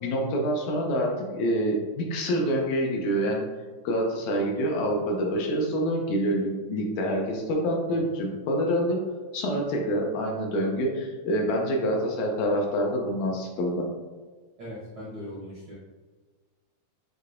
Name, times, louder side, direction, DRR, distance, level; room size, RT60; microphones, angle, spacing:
voice 1, 0.0-3.4 3.8-9.0 9.3-13.9, equal, 80° left, 1 dB, 1.9 m, -26 dB
voice 2, 14.6-15.7, equal, 65° right, -8 dB, 1.3 m, -39 dB
6.4 x 2.8 x 2.5 m, 1.4 s
omnidirectional pair, 3.5 m